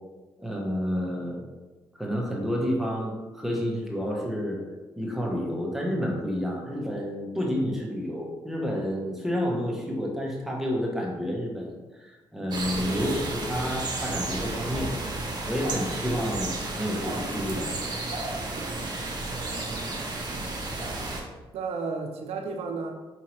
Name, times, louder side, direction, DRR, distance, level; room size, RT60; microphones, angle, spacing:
voice 1, 0.4-1.4 1.9-4.6 5.0-14.9 15.5-17.7, equal, 5° right, -2 dB, 1.0 m, -30 dB
sound 1, 12.5-21.2, right 2 dB, 45° right, 1.0 m, -32 dB
voice 2, 19.3-20.0 21.0-21.1 21.5-22.9, right 4 dB, 80° right, 4 dB, 0.6 m, -34 dB
5.0 x 2.8 x 3.0 m, 1.2 s
supercardioid pair, 60°, 10 cm